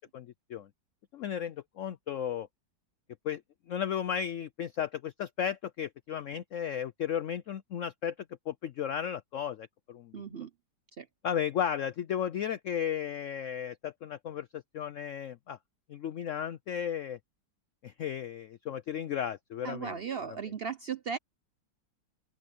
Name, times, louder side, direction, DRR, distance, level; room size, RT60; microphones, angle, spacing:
voice 1, 0.1-0.7 1.1-2.5 3.2-3.4 3.7-10.4 11.2-15.6 15.9-17.2 17.8-20.0, left 9 dB, 85° left, 0.6 m, -34 dB
voice 2, 10.1-10.5 11.0-11.1 19.6-21.2, right 6 dB, 85° right, 0.5 m, -36 dB
open air
omnidirectional pair, 2.0 m